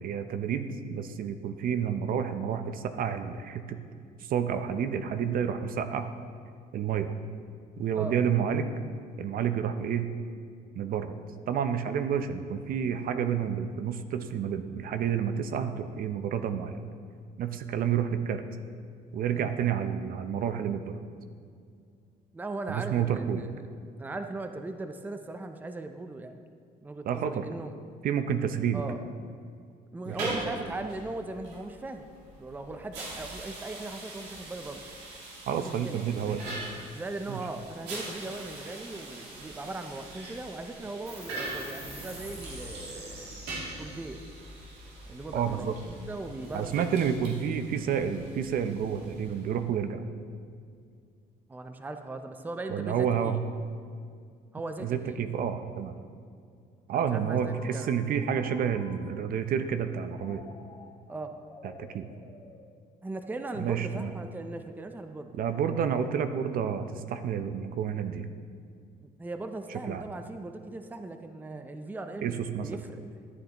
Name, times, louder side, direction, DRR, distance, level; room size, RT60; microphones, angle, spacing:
voice 1, 0.0-3.8 4.2-6.1 6.7-7.1 7.8-8.7 9.2-10.1 10.7-11.2 11.5-16.8 17.4-18.4 19.1-21.0 22.7-23.4 27.1-27.5 28.0-28.8 30.1-30.4 35.5-36.4 37.3-37.4 45.3-45.7 46.5-50.0 52.7-53.4 54.8-56.0 56.9-60.4 61.6-62.1 63.6-64.1 65.4-68.3 69.7-70.0 72.2-72.8, right 8 dB, 60° right, 9 dB, 0.6 m, -30 dB
voice 2, 22.3-23.6 24.0-26.4 26.8-27.7 28.7-29.0 29.9-32.1 32.4-34.8 35.5-36.0 36.9-43.3 43.8-44.2 45.1-47.2 51.5-53.4 54.5-55.2 56.9-57.9 61.1-61.4 63.0-65.3 69.0-73.0, right 2 dB, 10° right, 7 dB, 0.5 m, -39 dB
sound 1, 30.0-49.6, right 2 dB, 85° right, 2.6 m, -42 dB
sound 2, 41.1-48.0, right 1 dB, 35° right, 2.0 m, -47 dB
Telephone, 57.3-59.3 60.2-63.2, left 4 dB, 35° left, 1.3 m, -52 dB
13.5 x 8.5 x 3.0 m, 2.2 s
cardioid pair, 110°, 17 cm